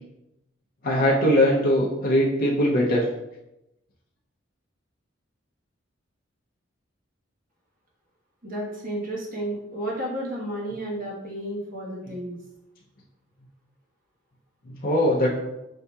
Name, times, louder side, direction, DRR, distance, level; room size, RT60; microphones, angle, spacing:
voice 1, 0.8-3.1 14.7-15.3, equal, 50° left, -4 dB, 0.6 m, -21 dB
voice 2, 8.4-12.3, right 1 dB, 45° right, -3 dB, 1.1 m, -32 dB
5.4 x 2.7 x 2.3 m, 0.92 s
head